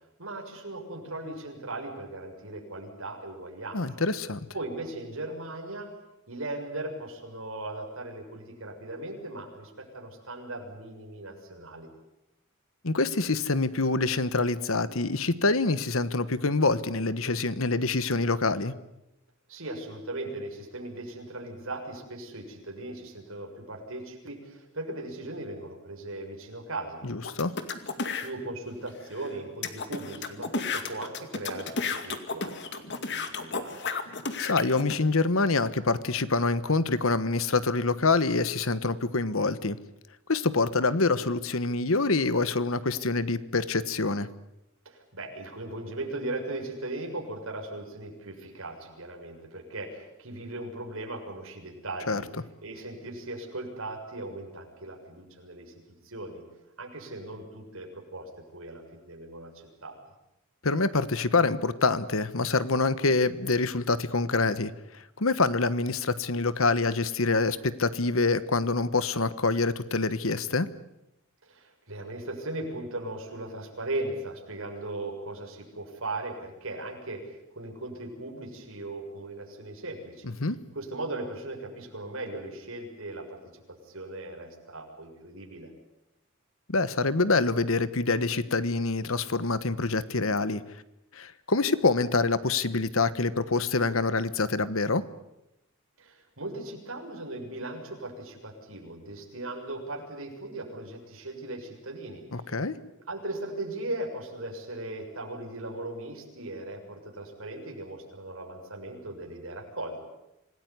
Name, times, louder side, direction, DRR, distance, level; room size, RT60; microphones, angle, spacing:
voice 1, 0.2-3.8 4.5-5.9 6.3-11.9 19.5-27.0 28.0-33.9 44.8-52.3 52.6-55.7 56.0-56.4 56.8-60.0 71.4-80.3 80.7-83.4 83.7-85.7 96.0-102.6 103.1-110.0, right 2 dB, 70° right, 2 dB, 6.8 m, -38 dB
voice 2, 3.7-4.5 12.8-18.7 27.0-27.5 34.4-39.8 40.3-44.3 52.1-52.2 60.6-70.7 80.2-80.6 86.7-90.6 91.1-95.0 102.3-102.7, left 3 dB, 70° left, 14 dB, 1.3 m, -26 dB
sound 1, 27.2-28.3 28.9-29.0 29.2-29.3 29.6-35.0, left 4 dB, 55° left, 2.3 m, -33 dB
26.5 x 19.0 x 9.7 m, 0.89 s
head